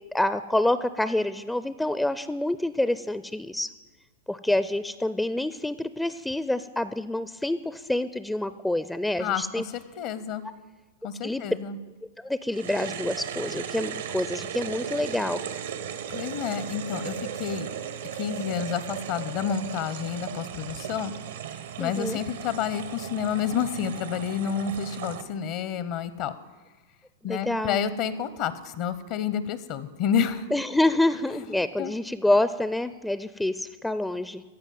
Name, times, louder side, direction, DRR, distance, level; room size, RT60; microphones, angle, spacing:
voice 1, 0.1-3.7 4.3-9.6 11.2-11.4 12.2-15.4 21.8-22.2 27.2-27.8 30.5-34.4, left 1 dB, 5° left, 14 dB, 0.4 m, -27 dB
voice 2, 9.2-10.4 11.0-11.8 16.1-17.7 18.1-21.1 21.8-26.4 27.2-30.5 31.3-31.9, left 8 dB, 50° left, 14 dB, 0.7 m, -29 dB
sound 1, 12.5-25.2, right 8 dB, 75° right, 1.0 m, -36 dB
14.5 x 5.3 x 9.2 m, 1.3 s
hypercardioid pair, 110°, 0 cm